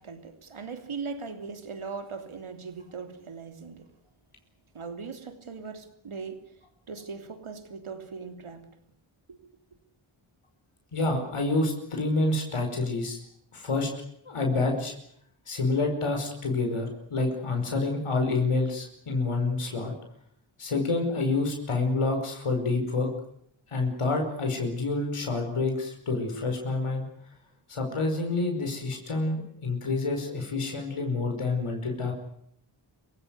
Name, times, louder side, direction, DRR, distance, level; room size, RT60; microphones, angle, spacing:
voice 1, 0.0-3.9 4.7-6.5 6.9-8.7, right 5 dB, 75° right, 7 dB, 3.2 m, -39 dB
voice 2, 10.9-13.2 13.5-13.9 14.3-14.9 15.5-19.9 20.6-23.1 23.7-27.0 27.7-32.1, left 3 dB, 80° left, 3 dB, 5.3 m, -28 dB
27.0 x 16.5 x 9.5 m, 0.69 s
cardioid pair, 50°, 50 cm